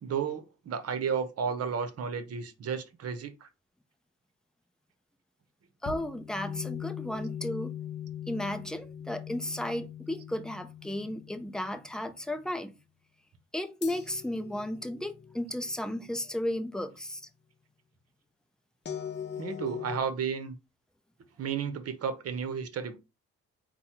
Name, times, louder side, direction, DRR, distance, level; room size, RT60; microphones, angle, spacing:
voice 1, 0.0-3.5 19.4-20.5 21.4-23.0, right 6 dB, 55° right, 0.9 m, -33 dB
voice 2, 5.8-7.7 8.3-12.7 13.5-17.2, left 1 dB, ahead, 0.6 m, -34 dB
sound 1, 5.9-12.1 13.8-16.6 18.9-20.0, left 8 dB, 35° left, 0.8 m, -41 dB
4.0 x 2.3 x 4.4 m
cardioid pair, 90°, 30 cm